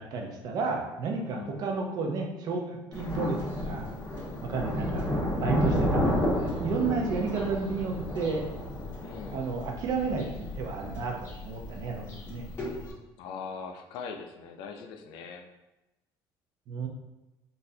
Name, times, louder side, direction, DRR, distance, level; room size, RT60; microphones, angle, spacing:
voice 1, 0.0-3.9 4.4-8.5 9.3-12.4 16.7-16.9, right 4 dB, 55° right, 1 dB, 0.6 m, -32 dB
voice 2, 1.3-1.7 9.0-9.5 13.2-15.5, left 5 dB, 75° left, 5 dB, 0.4 m, -41 dB
Thunder, 2.9-12.9, left 1 dB, 30° left, 1.5 m, -32 dB
4.0 x 2.5 x 2.7 m, 1.0 s
cardioid pair, 130°, 8 cm